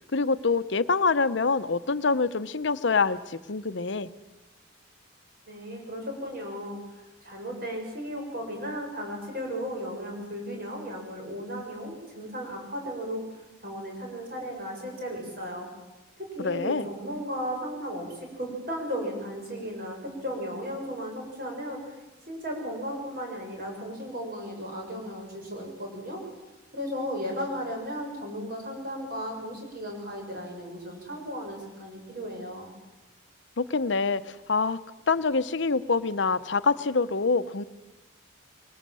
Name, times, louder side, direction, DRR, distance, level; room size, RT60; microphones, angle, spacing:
voice 1, 0.1-4.1 16.4-16.9 33.6-34.8 35.1-37.6, left 4 dB, 60° left, 13 dB, 0.8 m, -25 dB
voice 2, 5.5-13.2 13.6-15.7 16.2-18.1 18.4-22.0 22.3-26.2 26.7-32.7, equal, 50° right, 1 dB, 7.0 m, -35 dB
23.0 x 19.5 x 7.6 m, 1.1 s
head